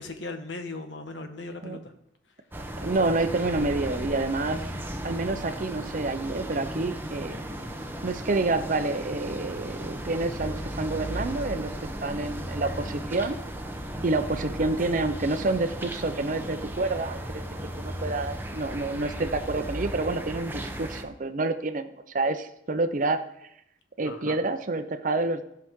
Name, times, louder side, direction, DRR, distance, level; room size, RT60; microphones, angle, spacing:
voice 1, 0.0-1.9 24.0-24.4, left 3 dB, 75° left, 6 dB, 1.1 m, -38 dB
sound 1, 2.5-21.0, right 1 dB, 10° right, 0.7 m, -36 dB
voice 2, 2.8-4.7 5.0-7.4 8.0-13.4 14.0-17.4 17.8-23.2 24.0-25.4, right 2 dB, 45° right, 10 dB, 0.6 m, -28 dB
14.0 x 5.8 x 3.7 m, 0.77 s
head